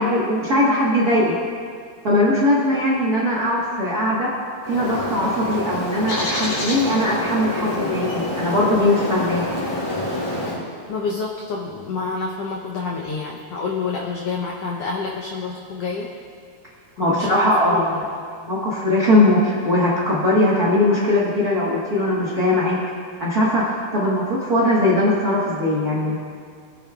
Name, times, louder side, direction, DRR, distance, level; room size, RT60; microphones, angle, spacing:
voice 1, 0.0-1.3 2.0-4.3 4.7-9.4 17.0-18.0 18.4-22.8 23.2-26.2, left 1 dB, 45° right, -6 dB, 1.2 m, -20 dB
Bird, 4.6-10.6, left 1 dB, 65° left, 4.4 m, -27 dB
voice 2, 10.9-16.1 17.0-18.0, left 4 dB, 80° left, -1 dB, 1.4 m, -28 dB
21.0 x 8.7 x 2.4 m, 2.2 s
omnidirectional pair, 3.8 m